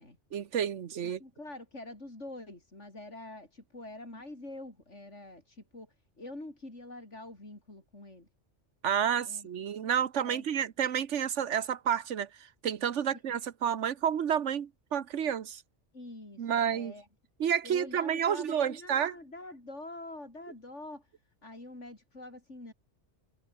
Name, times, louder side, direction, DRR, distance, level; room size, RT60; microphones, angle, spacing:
voice 1, 0.3-1.2 8.8-15.6 16.4-16.9 17.4-19.1, right 8 dB, 85° right, 1.3 m, -30 dB
voice 2, 1.0-8.3 9.2-9.5 10.2-10.4 15.9-17.1 17.6-21.1 21.4-22.7, left 2 dB, 85° left, 6.4 m, -46 dB
omnidirectional pair, 1.2 m